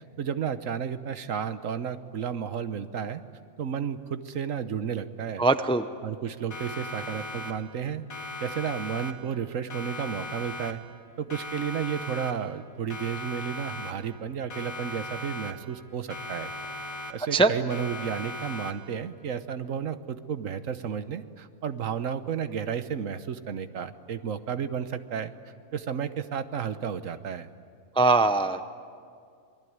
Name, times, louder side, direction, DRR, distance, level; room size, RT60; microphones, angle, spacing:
voice 1, 0.2-3.2 3.6-5.4 6.0-8.0 8.4-10.8 11.2-16.5 17.1-25.3 25.7-27.5, right 7 dB, 70° right, 11 dB, 1.3 m, -32 dB
voice 2, 5.4-5.9 17.3-17.5 28.0-28.6, right 3 dB, 5° left, 10 dB, 0.5 m, -21 dB
Siren, 6.5-7.8 8.1-9.4 9.7-11.0 11.3-12.6 12.9-14.2 14.5-15.8 16.1-17.4 17.7-19.0, left 2 dB, 85° left, 2.1 m, -38 dB
27.0 x 21.5 x 9.5 m, 2.2 s
omnidirectional pair, 1.4 m